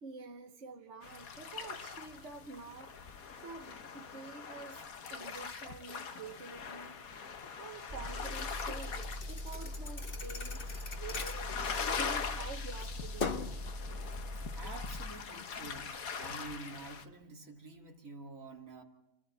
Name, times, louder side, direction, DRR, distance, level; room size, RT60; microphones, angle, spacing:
voice 1, 0.0-2.9 3.4-4.8 5.1-7.0 7.6-10.7 11.0-11.5 11.9-13.5, right 4 dB, 60° right, 3 dB, 1.3 m, -48 dB
sound 1, 1.0-17.0, left 5 dB, 85° left, 1.7 m, -42 dB
sound 2, 7.9-15.1, left 1 dB, 30° right, 4.0 m, -42 dB
Thump thud, 8.4-12.4 12.8-13.6, left 4 dB, 45° left, 1.3 m, -41 dB
voice 2, 14.5-18.8, right 3 dB, 75° right, 2 dB, 2.7 m, -48 dB
29.0 x 14.0 x 8.1 m, 0.96 s
omnidirectional pair, 1.4 m